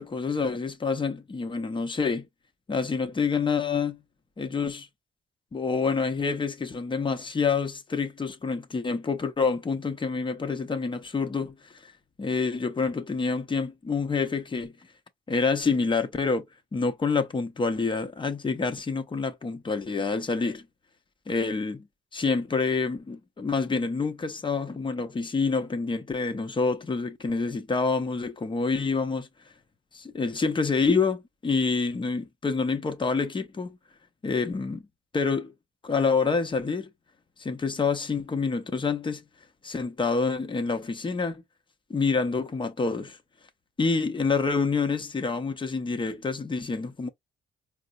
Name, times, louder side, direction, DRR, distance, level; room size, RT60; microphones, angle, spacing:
voice 1, 0.0-2.3 2.7-4.0 4.4-4.9 5.5-11.9 12.2-14.7 15.3-16.4 16.7-20.6 21.3-21.9 22.1-29.3 29.9-33.8 34.2-34.8 35.1-35.5 35.8-36.9 37.4-39.2 39.6-41.4 41.9-43.2 43.8-47.1, left 4 dB, 25° left, 0.7 m, -27 dB
4.5 x 2.0 x 2.5 m
cardioid pair, 90°, 20 cm